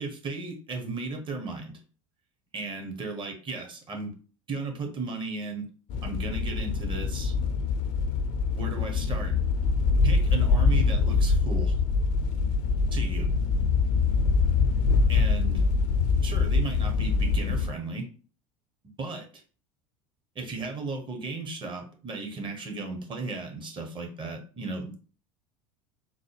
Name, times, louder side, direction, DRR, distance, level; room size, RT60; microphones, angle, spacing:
voice 1, 0.0-1.8 2.5-4.1 4.5-5.7 6.0-7.3 8.5-9.4 10.0-11.8 12.9-13.3 15.1-15.6 16.2-18.1 19.0-19.3 20.3-25.0, right 3 dB, 30° right, 3 dB, 1.0 m, -35 dB
sound 1, 5.9-17.7, left 4 dB, 50° left, 0.5 m, -24 dB
3.8 x 2.1 x 3.3 m, 0.38 s
figure-of-eight pair, 70°, 17 cm